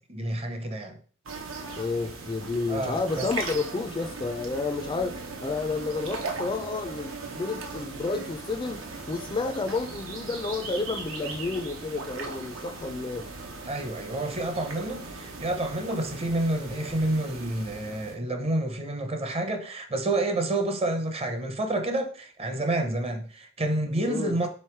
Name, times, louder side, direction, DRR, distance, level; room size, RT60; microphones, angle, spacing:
voice 1, 0.1-1.0 2.7-3.3 13.7-24.5, right 1 dB, 30° right, 0.7 m, -29 dB
sound 1, 1.3-18.2, right 3 dB, 85° right, 0.9 m, -38 dB
voice 2, 1.8-8.8 9.1-13.3 24.1-24.4, left 3 dB, 25° left, 0.3 m, -31 dB
3.7 x 3.1 x 4.4 m
head